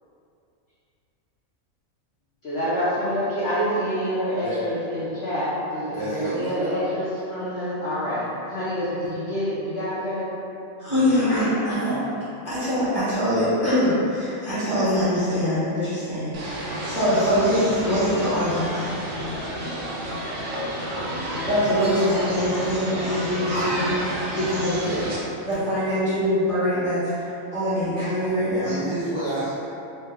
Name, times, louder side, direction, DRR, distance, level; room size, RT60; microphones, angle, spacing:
voice 1, 2.4-10.3 10.9-12.0, equal, 60° left, -11 dB, 0.8 m, -27 dB
voice 2, 5.9-6.9 23.5-23.8 24.8-25.1 28.6-29.6, right 1 dB, 20° right, -14 dB, 0.6 m, -30 dB
voice 3, 10.8-12.0 12.4-18.9 21.5-23.9 24.3-24.8 25.4-28.7, equal, 25° left, -14 dB, 1.3 m, -23 dB
sound 1, 16.3-25.2, equal, 80° right, 0.4 m, -30 dB
3.2 x 2.1 x 3.4 m, 2.8 s
omnidirectional pair, 1.4 m